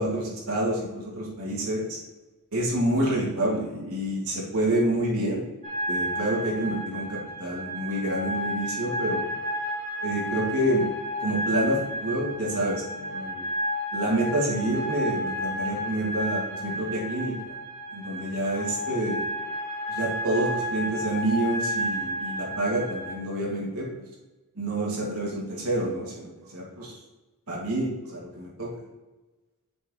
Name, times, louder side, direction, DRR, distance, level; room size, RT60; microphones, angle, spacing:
voice 1, 0.0-2.0 2.5-5.5 5.9-9.3 10.0-10.9 11.2-13.5 13.9-17.3 17.9-19.3 19.9-23.9 24.6-26.9 27.5-28.7, right 1 dB, 75° right, -4 dB, 2.1 m, -28 dB
sound 1, 5.6-23.1, equal, 35° right, 1.5 m, -32 dB
7.5 x 4.5 x 3.8 m, 1.1 s
head